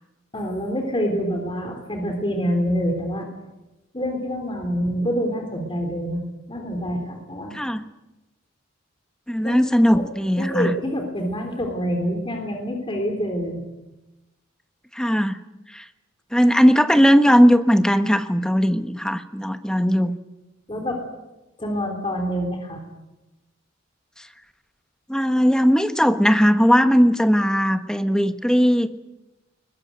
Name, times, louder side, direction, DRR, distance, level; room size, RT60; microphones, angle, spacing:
voice 1, 0.3-3.3 3.9-6.2 6.5-7.5 9.4-9.6 9.9-10.1 10.4-13.6 20.7-21.0 21.6-22.8, equal, 25° left, 3 dB, 3.5 m, -26 dB
voice 2, 9.3-10.7 14.9-15.4 15.7-15.8 16.3-20.2 25.1-28.9, equal, 5° left, 9 dB, 1.1 m, -18 dB
22.0 x 20.0 x 9.3 m, 1.0 s
head